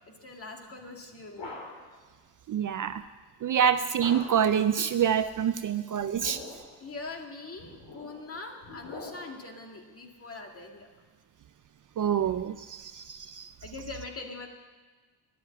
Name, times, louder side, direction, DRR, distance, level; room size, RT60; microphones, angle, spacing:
voice 1, 0.1-1.5 5.7-5.9 6.8-10.9 13.6-14.5, left 3 dB, 30° left, 2 dB, 2.1 m, -42 dB
sound 1, 0.8-2.0 4.0-4.6 6.0-6.8 7.6-9.5, left 2 dB, 80° left, 4.5 m, -44 dB
voice 2, 2.5-3.1 3.4-6.4 12.0-13.5, right 8 dB, 45° right, 11 dB, 0.5 m, -26 dB
13.0 x 11.0 x 9.7 m, 1.4 s
wide cardioid pair, 160°, 44 cm